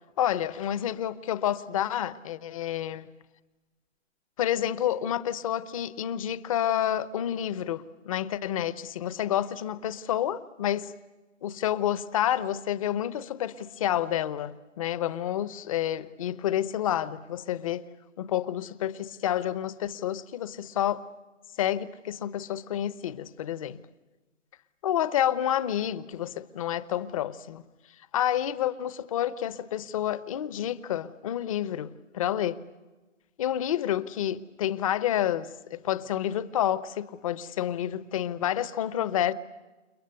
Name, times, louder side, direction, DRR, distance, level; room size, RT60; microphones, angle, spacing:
voice 1, 0.2-3.1 4.4-10.8 11.4-17.8 18.2-21.0 21.6-23.8 24.8-27.6 28.1-32.6 33.4-39.3, left 11 dB, 30° left, 0.8 m, -29 dB
30.0 x 28.5 x 6.7 m
hypercardioid pair, 145°, 37 cm